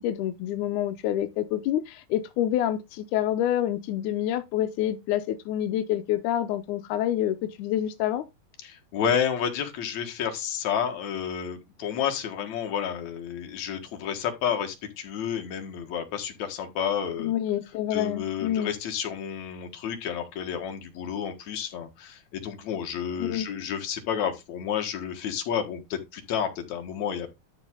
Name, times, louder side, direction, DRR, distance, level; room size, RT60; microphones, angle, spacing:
voice 1, 0.0-8.2 17.2-18.7 23.2-23.5, left 11 dB, 80° left, 1.8 m, -27 dB
voice 2, 8.6-17.3 17.9-27.3, left 8 dB, 55° left, 2.6 m, -30 dB
12.5 x 4.5 x 3.8 m
omnidirectional pair, 4.3 m